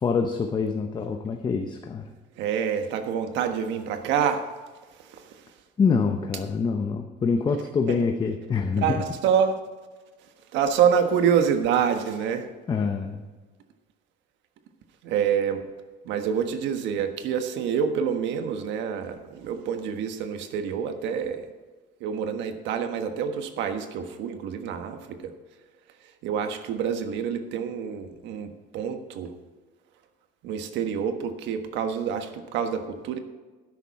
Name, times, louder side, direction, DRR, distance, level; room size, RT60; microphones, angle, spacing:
voice 1, 0.0-2.1 5.8-9.0 12.7-13.3, left 5 dB, 25° left, 5 dB, 0.8 m, -25 dB
voice 2, 2.3-4.5 4.9-5.6 8.8-9.6 10.2-12.5 15.0-15.7 16.0-21.5 22.0-25.3 26.0-29.3 30.4-33.2, right 7 dB, 75° right, 7 dB, 1.4 m, -27 dB
12.5 x 11.0 x 4.2 m, 1.3 s
cardioid pair, 155°, 19 cm